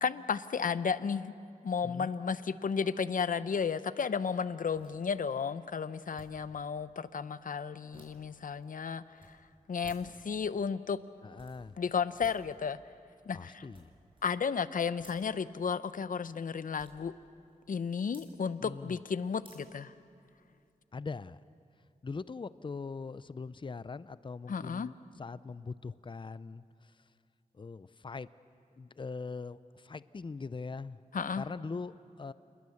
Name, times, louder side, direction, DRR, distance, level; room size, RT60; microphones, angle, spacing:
voice 1, 0.0-1.3 1.6-9.4 9.7-11.0 11.8-12.8 13.3-13.6 14.2-17.1 17.7-19.9 24.5-24.9 31.1-31.4, left 6 dB, 70° left, 14 dB, 0.7 m, -33 dB
sound 1, 4.5-20.7, right 1 dB, 35° right, 6.1 m, -61 dB
voice 2, 11.2-11.8 13.3-13.9 18.6-19.0 20.9-21.4 22.0-27.0 27.5-28.3 28.8-31.0 31.3-32.3, left 4 dB, 35° left, 16 dB, 0.5 m, -42 dB
27.5 x 20.5 x 7.1 m, 2.4 s
wide cardioid pair, 75°, 15 cm